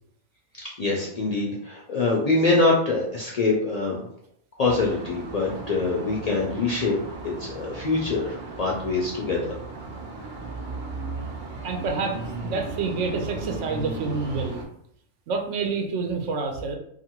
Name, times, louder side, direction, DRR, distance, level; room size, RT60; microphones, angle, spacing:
voice 1, 0.8-4.0 4.6-7.0 7.2-9.5, left 3 dB, 60° left, -3 dB, 0.4 m, -24 dB
sound 1, 4.6-14.7, right 3 dB, 55° right, 0.6 m, -36 dB
voice 2, 11.6-14.6 15.3-16.8, right 4 dB, 90° right, 3 dB, 0.9 m, -28 dB
2.6 x 2.5 x 2.8 m, 0.69 s
omnidirectional pair, 1.2 m